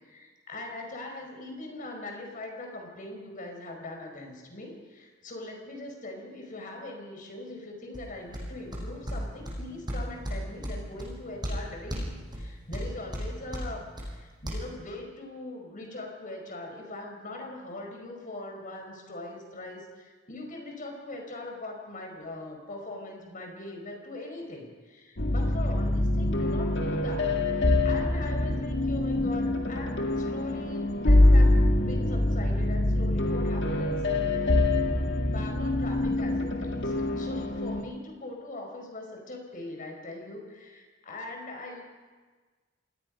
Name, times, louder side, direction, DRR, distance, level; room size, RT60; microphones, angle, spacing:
voice 1, 0.0-34.5 35.1-41.8, left 2 dB, 45° left, 2 dB, 5.1 m, -41 dB
sound 1, 7.9-14.5, equal, 20° right, 6.1 m, -36 dB
sound 2, 25.2-37.8, left 1 dB, 60° left, 1.9 m, -24 dB
27.5 x 19.0 x 5.4 m, 1.4 s
head